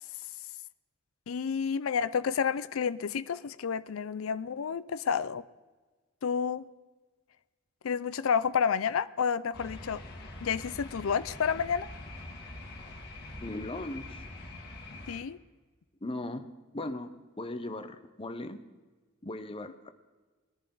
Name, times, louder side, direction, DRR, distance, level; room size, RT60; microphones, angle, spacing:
voice 1, 1.3-5.4 6.2-6.7 7.8-10.0 10.4-11.9 15.1-15.4, left 6 dB, 80° left, 0.5 m, -30 dB
sound 1, 9.5-15.2, left 2 dB, 55° left, 2.2 m, -44 dB
voice 2, 13.4-14.3 16.0-16.5 16.7-18.6 19.2-19.9, left 2 dB, 25° left, 0.9 m, -38 dB
20.5 x 10.5 x 3.9 m
head